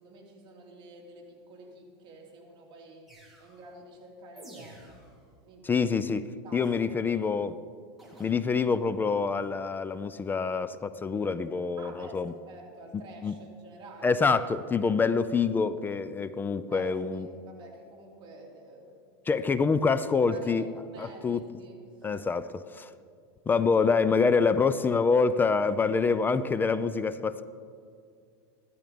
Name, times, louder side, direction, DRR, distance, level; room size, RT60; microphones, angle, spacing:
voice 1, 0.0-3.1 3.4-5.0 5.4-5.8 6.4-7.3 11.8-14.2 16.7-19.0 20.0-22.3, right 2 dB, 35° right, -1 dB, 2.8 m, -49 dB
sound 1, 3.1-3.6 4.4-5.2 8.0-8.3, right 1 dB, ahead, 3.5 m, -50 dB
voice 2, 5.6-7.6 8.2-12.3 13.2-13.3 14.0-17.3 19.3-20.6 21.0-21.4 22.0-22.5 22.7-22.9 23.5-27.4, left 5 dB, 15° left, 14 dB, 0.4 m, -26 dB
15.0 x 12.5 x 5.1 m, 2.2 s
supercardioid pair, 140°, 14 cm